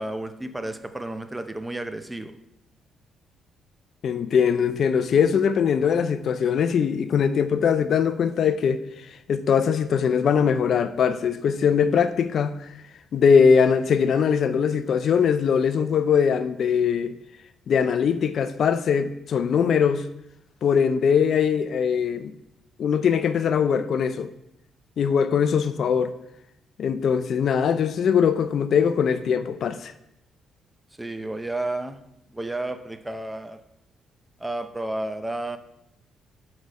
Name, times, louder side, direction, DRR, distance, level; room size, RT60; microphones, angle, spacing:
voice 1, 0.0-2.3 31.0-32.0 32.3-33.6 34.4-35.6, right 2 dB, 10° right, 0.6 m, -31 dB
voice 2, 4.0-8.8 9.3-12.5 13.1-17.1 17.7-20.1 20.6-22.3 22.8-24.3 25.0-26.2 26.8-29.9, left 7 dB, 60° left, 0.4 m, -21 dB
6.2 x 4.8 x 5.3 m
cardioid pair, 90°, 0 cm